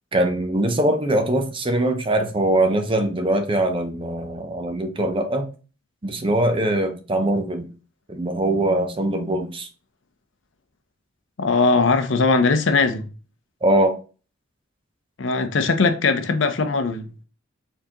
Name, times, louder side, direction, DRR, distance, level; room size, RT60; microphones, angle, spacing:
voice 1, 0.1-5.5 6.0-7.7 8.1-9.7 13.6-14.0, right 1 dB, 25° right, 0.6 m, -22 dB
voice 2, 11.4-13.0 15.2-17.1, left 4 dB, 65° left, 0.6 m, -20 dB
4.4 x 3.7 x 2.9 m
head